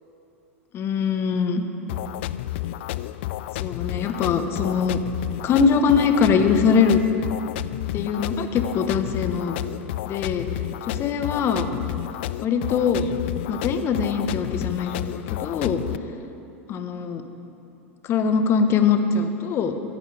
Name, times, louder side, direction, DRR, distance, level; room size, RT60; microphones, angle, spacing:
voice 1, 0.7-1.6 3.6-5.0 5.4-7.0 7.9-9.6 10.1-10.4 10.9-11.7 12.4-13.1 13.5-15.8 16.7-17.2 18.1-19.7, left 6 dB, 35° left, 7 dB, 1.4 m, -22 dB
sound 1, 1.9-16.0, left 14 dB, 60° left, 0.4 m, -31 dB
20.0 x 15.0 x 3.6 m, 2.7 s
figure-of-eight pair, 90°, 7 cm